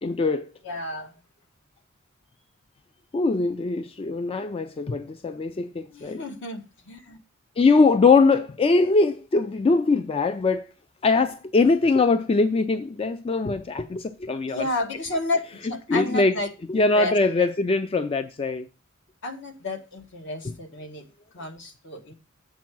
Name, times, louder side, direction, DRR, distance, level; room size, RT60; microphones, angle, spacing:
voice 1, 0.0-0.5 3.1-6.2 7.6-10.7 11.0-14.7 15.9-16.4 16.7-18.7 20.4-20.6, left 3 dB, 25° left, 0.3 m, -22 dB
voice 2, 0.6-1.1 5.9-7.2 14.5-16.5 16.9-17.5 19.2-21.0 21.3-22.1, left 2 dB, 60° left, 1.2 m, -31 dB
7.3 x 4.5 x 6.0 m
head